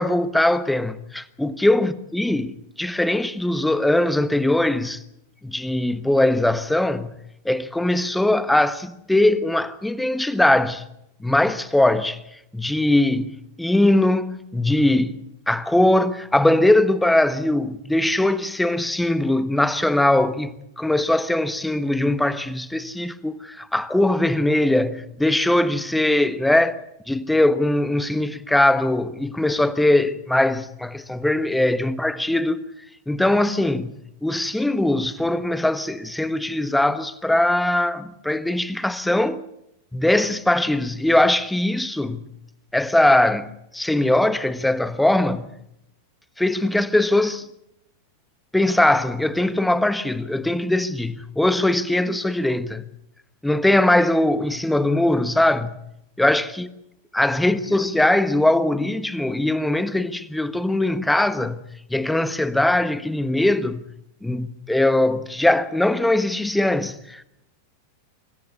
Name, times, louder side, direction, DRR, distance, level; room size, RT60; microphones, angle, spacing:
voice 1, 0.0-5.0 5.4-7.2 7.4-10.8 11.2-12.2 12.5-15.2 15.5-26.8 27.1-32.6 33.1-39.4 39.9-42.3 42.7-45.5 46.4-47.5 48.5-52.9 53.4-55.8 56.2-56.7 57.1-63.8 64.2-67.2, left 1 dB, 5° left, 1.3 m, -21 dB
26.0 x 14.0 x 8.3 m
figure-of-eight pair, 90°, 0 cm